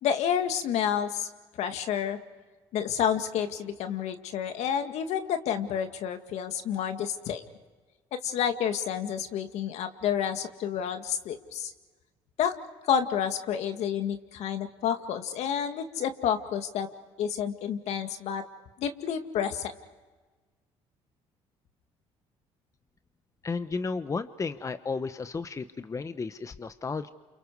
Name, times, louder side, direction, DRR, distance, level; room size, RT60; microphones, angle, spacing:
voice 1, 0.0-1.3 1.6-2.2 2.7-7.4 8.1-11.7 12.4-12.5 12.8-16.9 17.2-18.4 18.8-19.7, left 8 dB, 70° left, 7 dB, 2.1 m, -29 dB
voice 2, 23.4-27.1, left 4 dB, 25° left, 11 dB, 1.0 m, -33 dB
30.0 x 28.5 x 4.8 m, 1.3 s
supercardioid pair, 85°, 12 cm